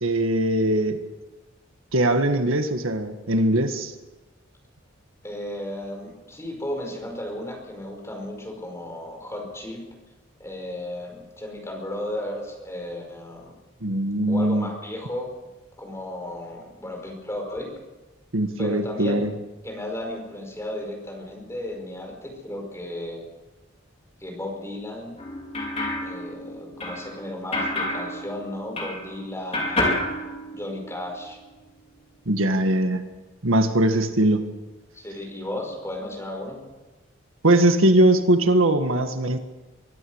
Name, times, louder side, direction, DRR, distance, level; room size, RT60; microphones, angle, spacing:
voice 1, 0.0-1.0 1.9-3.9 13.8-14.7 18.3-19.3 32.3-33.0 33.4-34.5 37.4-39.4, right 1 dB, 80° right, 7 dB, 1.8 m, -21 dB
voice 2, 5.2-9.9 10.4-13.6 14.3-15.3 15.8-17.7 18.6-19.3 19.6-23.3 24.2-25.2 26.0-30.1 30.5-31.4 34.9-36.6, left 1 dB, 15° left, 2 dB, 5.2 m, -34 dB
sound 1, 25.2-29.2 29.5-31.0, left 1 dB, 30° left, 5.1 m, -29 dB
24.5 x 13.0 x 8.1 m, 1.1 s
head